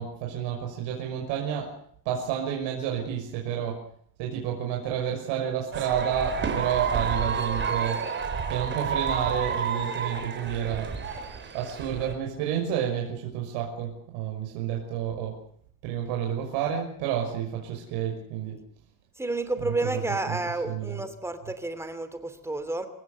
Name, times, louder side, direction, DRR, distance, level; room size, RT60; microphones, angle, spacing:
voice 1, 0.0-1.7 2.1-3.8 4.2-8.0 8.5-11.3 11.5-15.4 15.8-18.6 19.6-19.7 20.3-20.4 20.6-21.0, right 9 dB, 65° right, 1 dB, 6.0 m, -30 dB
sound 1, 5.7-12.1, right 6 dB, 25° right, 3.7 m, -30 dB
voice 2, 19.2-22.9, right 2 dB, 5° right, 10 dB, 2.8 m, -30 dB
27.5 x 16.0 x 8.2 m, 0.63 s
cardioid pair, 160°, 45 cm